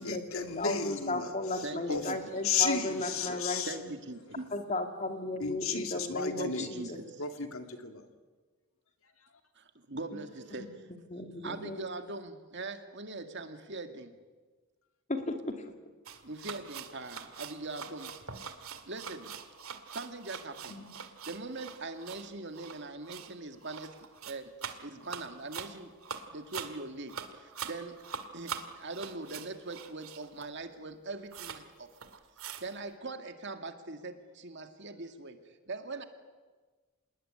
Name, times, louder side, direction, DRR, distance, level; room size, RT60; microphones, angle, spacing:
voice 1, 0.0-2.1 2.4-3.8 5.4-6.7 7.2-8.0 9.2-9.3, left 6 dB, 70° left, 2.5 m, -34 dB
voice 2, 0.6-3.9 4.5-7.0 10.1-10.2 10.6-10.7 11.1-11.8 15.1-15.7 20.7-20.9, left 2 dB, 30° left, 2.6 m, -35 dB
voice 3, 1.6-2.2 3.7-4.5 6.4-7.2 9.6-10.7 11.4-14.2 16.2-18.1 18.9-19.4 19.7-20.8 21.3-23.9 24.2-24.5 24.8-25.9 26.3-28.0 28.3-31.9 32.6-36.0, right 2 dB, 50° right, 2.2 m, -41 dB
sound 1, 16.1-30.6 30.9-31.0 31.3-31.6 31.9-32.7, right 6 dB, 70° right, 2.1 m, -43 dB
27.5 x 20.0 x 10.0 m
head